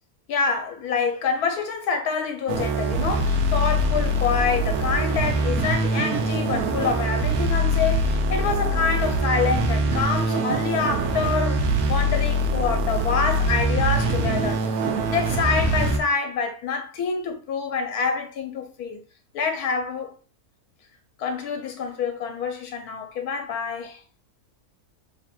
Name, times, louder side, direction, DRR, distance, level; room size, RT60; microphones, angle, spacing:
voice 1, 0.3-14.8 15.1-19.0 19.3-20.1 21.2-24.0, left 5 dB, 80° left, 1.3 m, -26 dB
sound 1, 2.5-16.0, right 1 dB, 80° right, 1.1 m, -23 dB
3.2 x 2.3 x 4.2 m
omnidirectional pair, 1.6 m